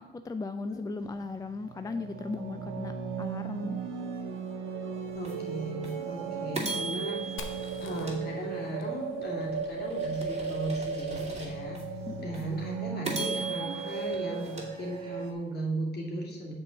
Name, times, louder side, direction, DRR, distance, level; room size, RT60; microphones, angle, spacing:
voice 1, 0.0-2.9 3.2-3.8 12.1-12.3, left 3 dB, 20° left, 9 dB, 0.4 m, -37 dB
sound 1, 1.0-15.3, right 6 dB, 90° right, 1.0 m, -36 dB
voice 2, 5.1-11.8 12.2-16.5, right 1 dB, 55° left, -2 dB, 2.7 m, -36 dB
sound 2, 5.2-5.3 5.8-5.9 6.5-8.9 9.4-11.8 12.3-12.4 13.0-15.4, right 2 dB, 35° right, 2.4 m, -39 dB
Fire, 7.4-11.1, left 4 dB, 85° left, 0.9 m, -49 dB
6.6 x 4.6 x 6.5 m, 0.89 s
cardioid pair, 90°, 20 cm